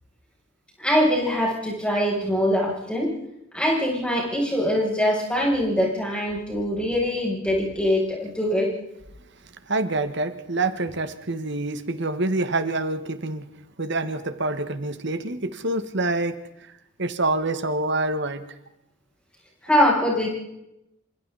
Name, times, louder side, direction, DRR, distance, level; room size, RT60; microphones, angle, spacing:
voice 1, 0.8-3.1 3.5-8.7 19.6-20.3, equal, 5° left, -3 dB, 7.5 m, -23 dB
voice 2, 9.7-13.5 13.8-18.6, right 2 dB, 55° right, 9 dB, 1.6 m, -27 dB
28.5 x 26.0 x 4.2 m, 0.83 s
head